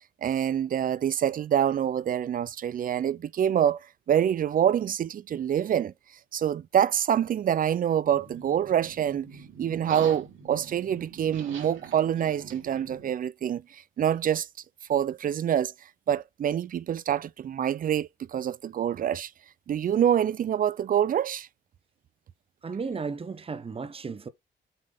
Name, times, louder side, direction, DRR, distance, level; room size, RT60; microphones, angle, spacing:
voice 1, 0.2-3.8 4.1-5.9 6.3-9.3 9.6-14.5 14.9-15.7 16.1-19.3 19.7-21.5, right 9 dB, 45° right, 0.5 m, -26 dB
sound 1, 8.1-13.1, right 6 dB, 75° right, 3.5 m, -44 dB
voice 2, 22.6-24.3, right 5 dB, 30° right, 0.9 m, -34 dB
7.8 x 3.5 x 3.9 m
cardioid pair, 90°, 20 cm